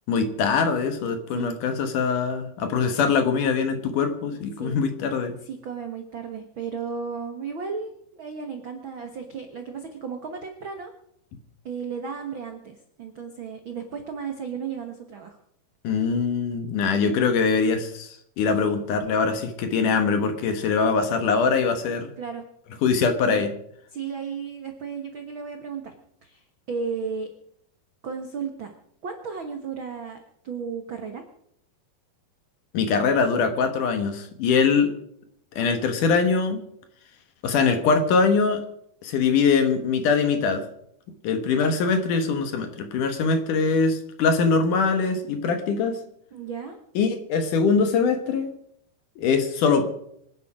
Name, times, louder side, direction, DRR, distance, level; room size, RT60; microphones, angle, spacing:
voice 1, 0.1-5.4 15.8-22.1 22.8-23.5 32.7-34.9 35.6-36.6 37.4-38.6 39.0-40.6 41.2-46.0 47.0-48.5 49.2-49.8, left 5 dB, 65° left, 8 dB, 2.5 m, -22 dB
voice 2, 5.4-10.9 11.6-15.4 22.2-22.4 23.3-23.5 23.9-25.9 26.2-27.3 28.0-28.7 29.0-30.2 30.4-31.2 46.3-46.8, right 6 dB, 80° right, 5 dB, 1.1 m, -34 dB
25.0 x 10.5 x 5.0 m, 0.72 s
omnidirectional pair, 4.5 m